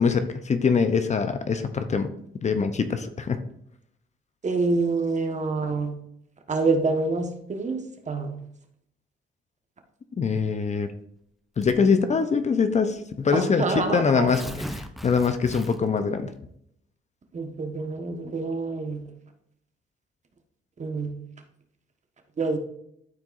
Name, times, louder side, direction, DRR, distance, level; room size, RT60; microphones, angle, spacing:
voice 1, 0.0-2.1 2.4-3.4 10.2-10.9 11.6-16.3, left 5 dB, 35° left, 9 dB, 0.7 m, -23 dB
voice 2, 4.4-5.9 6.5-7.8 8.1-8.3 13.3-14.3 17.3-19.0 20.8-21.1 22.4-22.6, right 3 dB, 35° right, 5 dB, 1.4 m, -26 dB
Tearing, 11.6-12.0 12.9-13.0 13.3-13.4 14.0-16.0, equal, ahead, 0.7 m, -38 dB
12.5 x 4.6 x 2.6 m, 0.72 s
cardioid pair, 90°, 20 cm